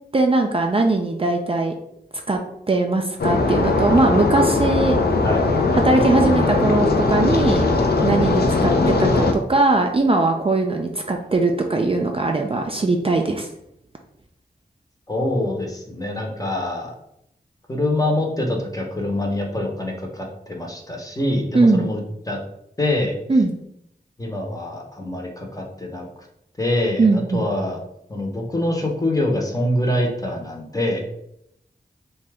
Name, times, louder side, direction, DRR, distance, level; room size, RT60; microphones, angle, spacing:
voice 1, 0.1-1.7 2.3-2.4 2.7-5.0 5.7-7.7 8.0-13.5 21.5-21.9 23.3-23.5 27.0-27.4, right 2 dB, 30° right, 2 dB, 0.4 m, -20 dB
sound 1, 3.2-9.3, left 3 dB, 65° left, 0.5 m, -19 dB
voice 2, 15.1-16.9 17.7-22.0 22.3-22.4 22.8-23.1 24.2-26.1 26.6-27.8 28.1-31.0, left 1 dB, 20° left, 0 dB, 0.8 m, -24 dB
2.7 x 2.3 x 3.3 m, 0.76 s
cardioid pair, 40°, 18 cm